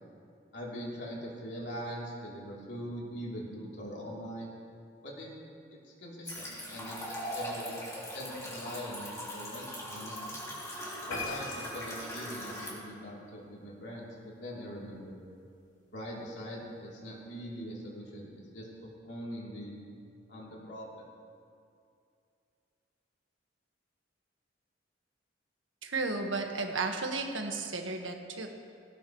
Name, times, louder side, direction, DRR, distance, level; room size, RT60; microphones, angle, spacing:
voice 1, 0.5-4.5 5.0-5.3 6.0-7.7 8.1-10.3 11.1-15.2 15.9-18.7 19.0-19.8 20.3-21.1, equal, 70° left, -4 dB, 3.4 m, -42 dB
sound 1, 6.3-12.7, equal, 15° left, 2.9 m, -40 dB
sound 2, 11.1-13.9 14.3-14.5 15.0-15.1 15.4-15.5 15.7-15.8, left 3 dB, 90° left, 3.1 m, -42 dB
voice 2, 25.8-28.5, right 3 dB, 90° right, 2 dB, 1.7 m, -33 dB
18.0 x 17.5 x 3.2 m, 2.4 s
head